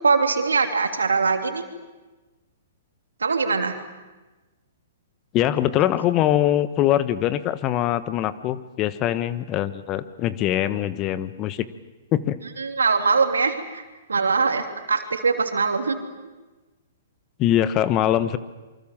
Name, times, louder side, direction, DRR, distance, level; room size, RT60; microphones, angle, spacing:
voice 1, 0.0-1.7 3.2-3.8 12.6-13.8 14.1-16.0, right 4 dB, 85° right, 5 dB, 3.0 m, -22 dB
voice 2, 5.3-11.7 12.1-12.4 17.4-18.4, left 12 dB, 30° left, 14 dB, 1.3 m, -22 dB
27.5 x 24.5 x 7.5 m, 1.2 s
hypercardioid pair, 120°, 0 cm